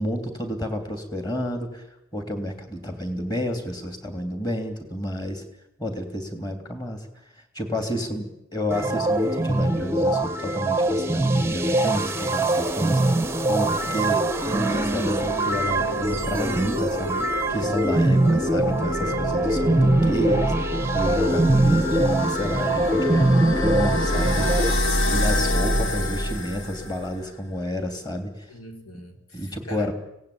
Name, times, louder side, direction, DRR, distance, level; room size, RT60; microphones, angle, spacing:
voice 1, 0.0-1.9 2.1-5.4 5.8-7.1 7.5-17.1 17.5-24.8 25.0-28.5 29.3-29.9, equal, 20° left, 6 dB, 3.3 m, -30 dB
voice 2, 7.9-8.3 13.6-14.0 21.2-21.6 24.5-25.8 28.5-29.9, left 1 dB, 85° left, 3 dB, 4.4 m, -41 dB
sound 1, 8.7-24.7, right 2 dB, 10° right, 0.8 m, -23 dB
sound 2, 13.1-27.3, left 1 dB, 60° left, 2.6 m, -28 dB
24.5 x 18.0 x 8.8 m, 0.86 s
head